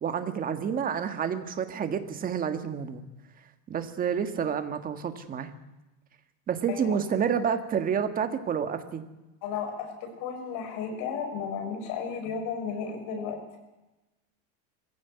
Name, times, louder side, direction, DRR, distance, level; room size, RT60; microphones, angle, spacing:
voice 1, 0.0-3.0 3.7-5.5 6.5-9.0, right 7 dB, 20° right, 9 dB, 1.6 m, -29 dB
voice 2, 6.7-7.0 9.4-13.6, left 6 dB, 50° left, 5 dB, 6.1 m, -34 dB
21.5 x 16.0 x 9.3 m, 1.0 s
supercardioid pair, 165°, 39 cm